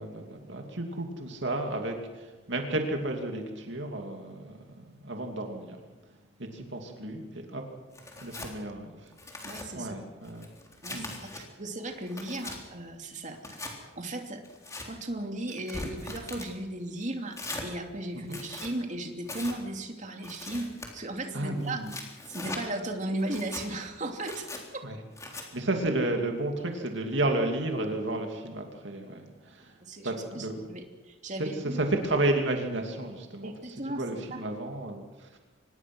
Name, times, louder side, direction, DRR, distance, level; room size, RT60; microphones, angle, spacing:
voice 1, 0.0-5.8 6.4-7.6 8.2-9.1 9.7-10.5 10.9-11.1 18.3-18.4 21.3-21.9 24.8-25.0 25.3-29.7 30.0-30.6 31.4-35.3, right 2 dB, 60° right, 3 dB, 2.8 m, -32 dB
Tearing, 7.9-8.5 9.1-9.7 10.2-11.4 11.9-12.6 13.4-13.7 14.4-14.9 15.5-16.5 17.3-17.7 18.2-18.7 19.2-19.6 20.2-20.9 21.6-22.6 23.2-23.6 24.2-24.6 25.2-25.4, left 2 dB, 15° left, 3.7 m, -40 dB
voice 2, 9.4-10.0 10.8-13.7 14.0-14.4 14.8-21.8 22.3-24.5 24.7-24.8 29.8-31.8 33.4-34.4, right 1 dB, 35° right, 4 dB, 2.8 m, -36 dB
25.5 x 20.5 x 6.3 m, 1.2 s
head